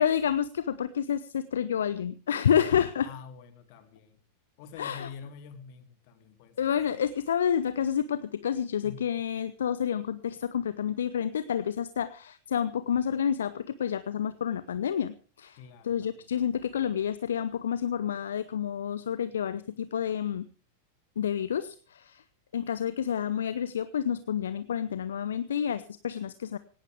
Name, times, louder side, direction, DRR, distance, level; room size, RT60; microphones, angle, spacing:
voice 1, 0.0-3.1 4.8-5.1 6.6-20.5 21.2-22.2 22.5-26.6, left 8 dB, 65° left, 15 dB, 0.7 m, -29 dB
voice 2, 3.0-4.2 4.6-6.6 6.9-7.0 8.8-9.0 15.6-16.3, left 6 dB, 45° left, 9 dB, 2.5 m, -46 dB
18.5 x 17.5 x 3.5 m, 0.38 s
figure-of-eight pair, 90°, 0 cm